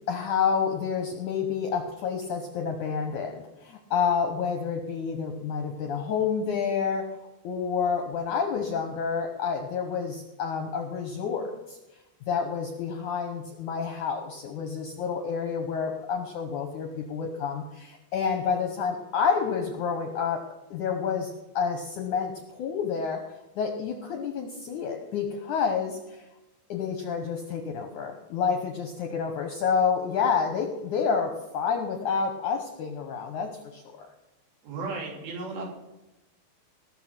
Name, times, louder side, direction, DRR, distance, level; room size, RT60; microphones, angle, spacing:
voice 1, 0.1-7.0 7.4-11.8 12.3-20.4 20.7-23.2 23.6-26.2 26.7-34.1, left 6 dB, 75° left, 4 dB, 1.8 m, -29 dB
voice 2, 34.6-35.7, right 3 dB, 85° right, -3 dB, 5.4 m, -34 dB
19.0 x 6.5 x 6.0 m, 0.98 s
omnidirectional pair, 4.9 m